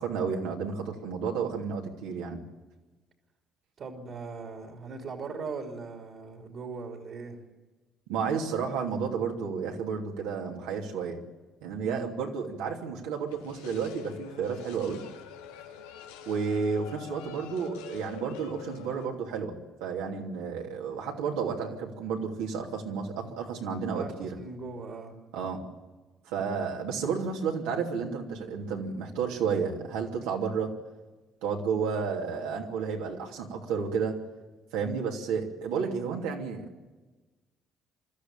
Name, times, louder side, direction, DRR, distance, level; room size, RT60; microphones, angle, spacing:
voice 1, 0.0-2.4 8.1-11.2 11.6-15.0 16.3-24.4 25.3-25.6 26.2-30.7 31.4-34.2 34.7-36.9, right 6 dB, 80° right, 0 dB, 2.8 m, -31 dB
voice 2, 3.8-7.4 11.8-12.2 23.9-25.2 35.7-36.2, right 4 dB, 60° right, 3 dB, 3.2 m, -40 dB
sound 1, 13.3-19.1, left 9 dB, 85° left, 1.2 m, -45 dB
25.0 x 13.5 x 9.0 m, 1.2 s
hypercardioid pair, 55°, 0 cm